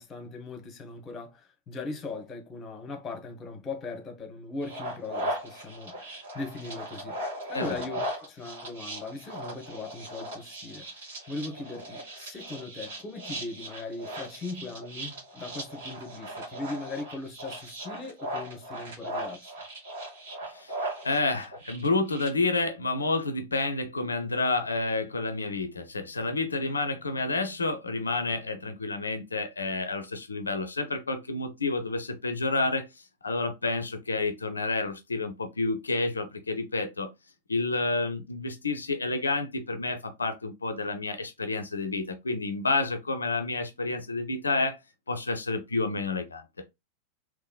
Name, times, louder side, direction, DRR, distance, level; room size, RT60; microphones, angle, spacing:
voice 1, 0.0-7.2 7.5-19.5, left 3 dB, 25° left, 1.1 m, -39 dB
sound 1, 4.6-22.3, right 1 dB, 55° right, 2.0 m, -38 dB
voice 2, 21.0-37.1 37.5-44.8 45.1-46.4, left 3 dB, 75° left, 0.5 m, -29 dB
3.6 x 3.0 x 2.2 m
figure-of-eight pair, 90°, 0 cm